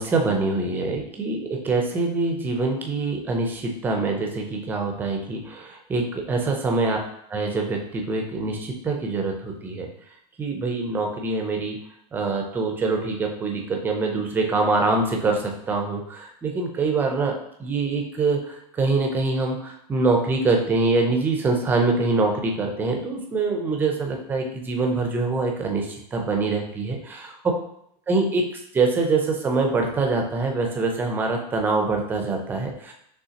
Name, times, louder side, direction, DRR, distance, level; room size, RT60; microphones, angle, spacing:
voice 1, 0.0-7.0 7.3-9.9 10.4-11.8 12.1-27.3 28.1-28.5 28.7-32.9, right 3 dB, 10° right, 2 dB, 0.4 m, -24 dB
5.7 x 3.2 x 2.8 m, 0.72 s
supercardioid pair, 160°, 20 cm